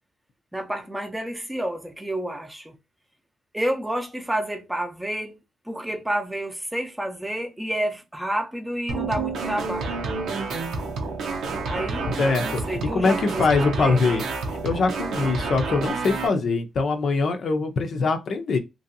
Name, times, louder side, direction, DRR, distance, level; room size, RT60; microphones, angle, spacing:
voice 1, 0.5-2.8 3.5-5.4 5.7-10.0 11.7-14.0, right 1 dB, 10° right, 0.6 m, -30 dB
sound 1, 8.9-16.3, right 4 dB, 85° right, 0.8 m, -29 dB
voice 2, 12.2-14.2 14.6-18.6, left 4 dB, 60° left, 0.6 m, -23 dB
2.9 x 2.7 x 2.6 m
cardioid pair, 105°, 0 cm